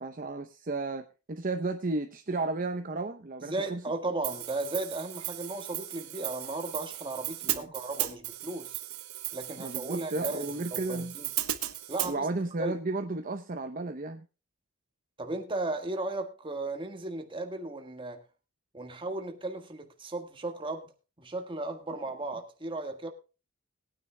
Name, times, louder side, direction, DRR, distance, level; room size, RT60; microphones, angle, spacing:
voice 1, 0.0-3.8 7.4-7.7 9.6-11.1 12.0-14.2, right 2 dB, 40° right, 0.7 m, -33 dB
voice 2, 3.4-8.8 9.3-11.3 11.9-12.3 12.6-12.8 15.2-18.2 18.7-20.9 21.2-23.1, right 2 dB, 20° right, 1.6 m, -35 dB
Hi-hat, 4.2-12.1, right 14 dB, 80° right, 1.0 m, -36 dB
21.0 x 9.5 x 2.2 m
head